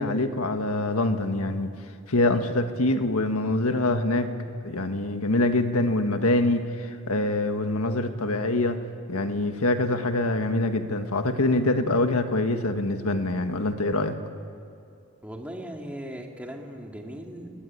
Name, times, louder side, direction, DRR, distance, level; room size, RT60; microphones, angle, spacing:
voice 1, 0.0-1.7 2.1-4.3 4.6-8.8 9.1-14.1, left 2 dB, 80° left, 7 dB, 1.6 m, -25 dB
voice 2, 15.2-17.6, equal, 5° right, 1 dB, 2.5 m, -38 dB
28.5 x 21.0 x 9.7 m, 2.5 s
head